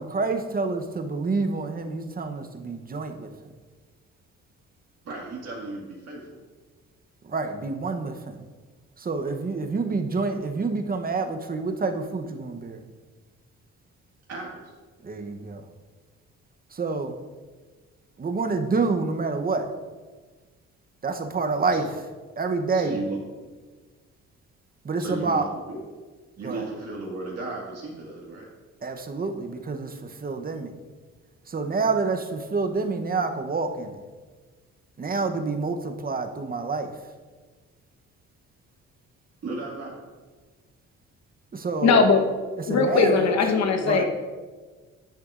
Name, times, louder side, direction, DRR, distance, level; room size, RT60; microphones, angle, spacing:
voice 1, 0.0-3.3 7.2-8.5 9.0-12.8 15.0-15.6 16.7-17.2 18.2-19.7 21.0-21.9 22.4-23.0 24.8-25.5 26.4-26.7 28.8-30.7 31.5-34.0 35.0-37.1 41.5-42.0 42.6-43.3 43.8-44.0, right 4 dB, 30° right, 6 dB, 0.8 m, -28 dB
voice 2, 5.0-6.3 14.3-14.7 21.7-21.8 22.7-23.2 23.5-23.6 25.0-25.8 26.4-28.5 39.4-40.0, right 3 dB, 55° right, -4 dB, 1.9 m, -35 dB
voice 3, 41.8-42.2 42.7-44.0, left 4 dB, 60° left, 4 dB, 1.1 m, -19 dB
10.5 x 8.1 x 2.5 m, 1.4 s
cardioid pair, 90°, 30 cm